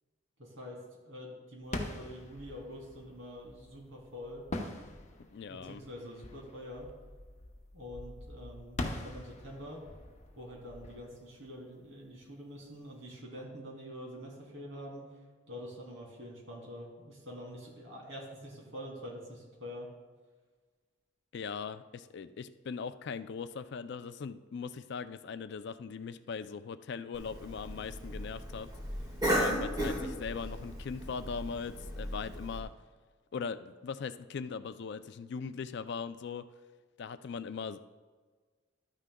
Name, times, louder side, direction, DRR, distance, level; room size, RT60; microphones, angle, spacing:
voice 1, 0.4-4.5 5.5-6.9 7.7-9.8 10.4-15.1 15.5-19.9, equal, 70° right, -2 dB, 2.7 m, -46 dB
sound 1, 1.6-12.2, left 1 dB, 35° left, 0.9 m, -43 dB
voice 2, 5.3-5.8 21.3-28.7 29.4-32.7 33.3-36.5 37.0-37.8, left 5 dB, 60° left, 12 dB, 0.4 m, -40 dB
Cough, 27.1-32.6, equal, 20° right, 1.7 m, -35 dB
12.5 x 9.8 x 2.3 m, 1.4 s
head